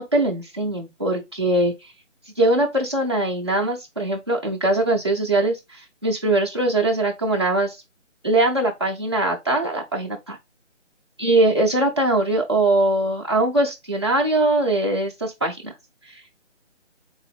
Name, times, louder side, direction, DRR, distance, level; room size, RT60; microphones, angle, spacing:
voice 1, 0.0-1.7 2.4-7.8 8.2-10.4 11.2-15.7, right 2 dB, 25° right, 0.5 m, -21 dB
3.7 x 2.5 x 3.4 m
figure-of-eight pair, 160°, 37 cm